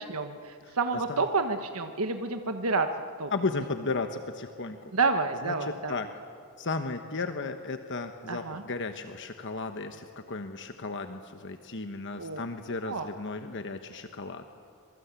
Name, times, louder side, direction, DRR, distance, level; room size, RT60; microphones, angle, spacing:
voice 1, 0.0-2.9 3.2-3.3 4.9-6.0 8.3-8.6 12.2-12.4 12.9-13.1, right 4 dB, 75° right, 6 dB, 1.4 m, -29 dB
voice 2, 0.6-1.2 3.3-4.9 5.4-6.1 6.6-14.4, left 3 dB, 55° left, 7 dB, 1.2 m, -35 dB
26.5 x 24.0 x 8.3 m, 2.4 s
head